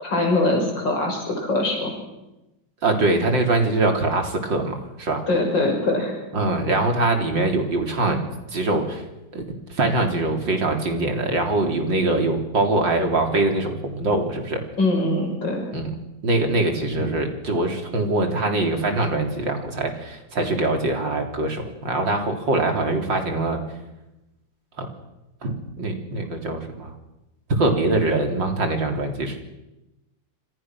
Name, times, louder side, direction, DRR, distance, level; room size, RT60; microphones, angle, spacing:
voice 1, 0.0-1.9 5.3-6.1 14.8-15.7, left 2 dB, 65° left, 2 dB, 7.1 m, -22 dB
voice 2, 2.8-5.2 6.3-8.2 8.5-9.0 9.3-9.4 9.7-14.6 15.7-15.9 16.2-23.6 24.8-24.9 25.4-26.9 27.5-29.4, right 2 dB, 65° right, 4 dB, 4.3 m, -23 dB
28.0 x 26.0 x 6.3 m, 0.96 s
omnidirectional pair, 2.1 m